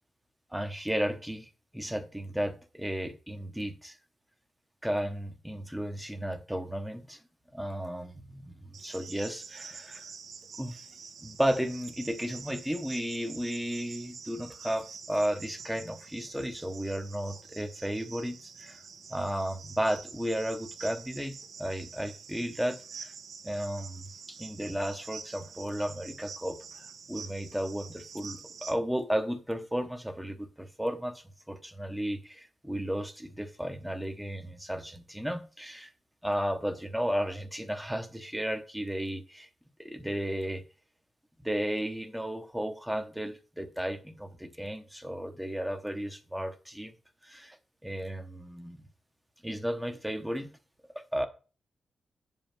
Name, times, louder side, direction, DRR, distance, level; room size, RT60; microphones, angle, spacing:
voice 1, 0.5-4.0 4.8-7.2 7.5-10.0 10.6-10.8 11.2-18.8 19.1-21.3 21.6-23.1 23.4-35.9 36.2-39.5 39.8-40.6 41.4-46.9 47.2-47.6 47.8-48.8 49.4-50.5 50.9-51.3, equal, 5° right, 1.0 m, -34 dB
Cricket, 8.7-28.7, right 5 dB, 80° right, 1.4 m, -47 dB
8.3 x 5.5 x 5.9 m
wide cardioid pair, 170°, 0 cm